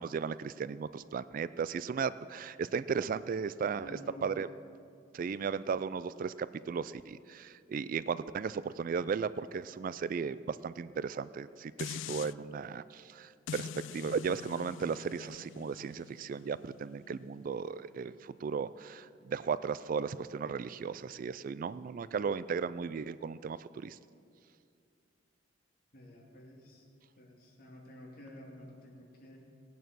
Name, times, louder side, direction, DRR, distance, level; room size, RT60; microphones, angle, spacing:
voice 1, 0.0-4.5 5.1-24.0, right 6 dB, 45° right, 16 dB, 0.3 m, -36 dB
voice 2, 3.8-4.3 25.9-26.9 27.2-29.4, left 1 dB, 50° left, -1 dB, 2.6 m, -51 dB
sound 1, 11.8-12.3 13.5-18.6 19.1-19.2, left 7 dB, 75° left, 0.3 m, -45 dB
18.0 x 9.3 x 6.2 m, 2.4 s
head